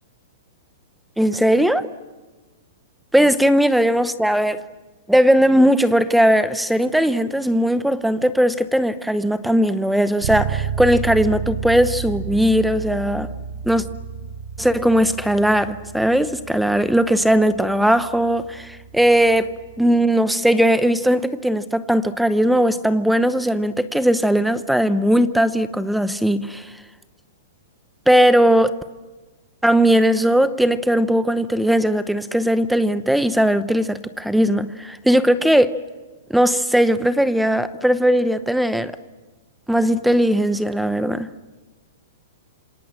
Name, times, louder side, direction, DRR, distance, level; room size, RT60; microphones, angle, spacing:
voice 1, 1.2-1.9 3.1-4.6 5.1-13.3 13.6-13.8 14.6-26.7 28.1-28.7 29.6-35.7 36.3-39.0 39.7-41.3, equal, ahead, 14 dB, 0.8 m, -18 dB
Bass guitar, 10.2-19.9, right 7 dB, 85° right, 3.7 m, -31 dB
27.0 x 26.5 x 7.6 m, 1.2 s
hypercardioid pair, 165°, 0 cm